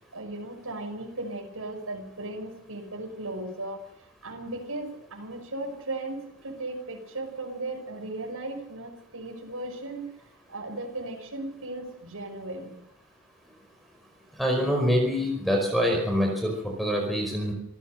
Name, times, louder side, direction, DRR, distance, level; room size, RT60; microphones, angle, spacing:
voice 1, 0.1-3.9 4.2-10.1 10.5-12.7, right 2 dB, 75° right, 0 dB, 5.8 m, -36 dB
voice 2, 14.4-17.5, equal, ahead, 2 dB, 5.0 m, -25 dB
27.0 x 14.5 x 6.7 m, 0.81 s
head